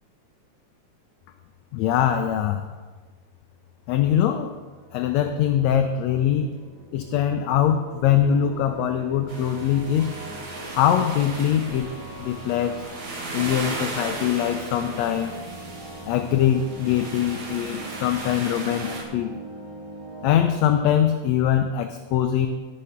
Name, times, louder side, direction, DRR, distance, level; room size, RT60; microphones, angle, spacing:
voice 1, 1.7-2.7 3.9-4.5 4.9-6.5 6.9-10.1 10.7-11.9 12.2-12.8 13.3-15.4 16.1-19.3 20.2-22.5, left 10 dB, 75° left, 6 dB, 1.8 m, -22 dB
sound 1, 4.7-20.5, right 2 dB, 70° right, 3.6 m, -41 dB
sound 2, 9.3-19.0, right 2 dB, 50° right, 2.2 m, -36 dB
13.0 x 6.6 x 5.7 m, 1.4 s
omnidirectional pair, 3.4 m